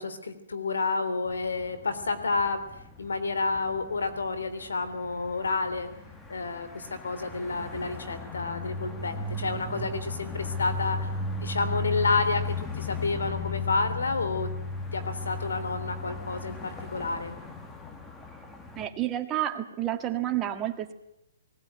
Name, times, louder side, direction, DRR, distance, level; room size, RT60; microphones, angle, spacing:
voice 1, 0.0-2.6 3.0-5.9 6.3-11.1 11.4-14.5 14.9-17.3, left 3 dB, 90° left, 12 dB, 3.4 m, -30 dB
sound 1, 1.3-18.9, left 2 dB, 10° left, 1.8 m, -36 dB
voice 2, 18.7-20.9, right 12 dB, 20° right, 5 dB, 1.8 m, -30 dB
20.0 x 18.0 x 9.5 m, 0.85 s
hypercardioid pair, 150°, 0 cm